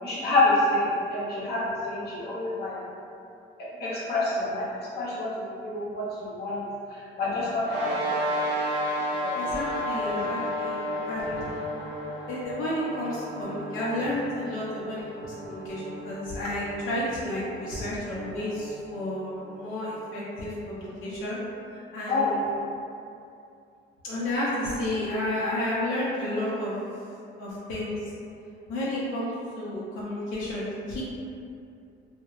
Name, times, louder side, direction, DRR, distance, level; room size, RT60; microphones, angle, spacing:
voice 1, 0.0-2.8 3.8-4.7 5.0-5.3 5.6-6.6 7.2-7.9 8.5-8.7 9.2-9.5 9.9-10.2 10.9-11.2 22.1-22.3, left 2 dB, 55° left, -8 dB, 0.8 m, -27 dB
sound 1, 7.6-20.4, equal, 60° right, 0.4 m, -33 dB
voice 2, 9.3-11.6 12.3-21.4 21.9-22.4 24.0-27.0 27.4-28.0 28.7-31.0, left 1 dB, 85° left, -8 dB, 0.6 m, -31 dB
2.9 x 2.1 x 2.4 m, 2.6 s
cardioid pair, 140°, 20 cm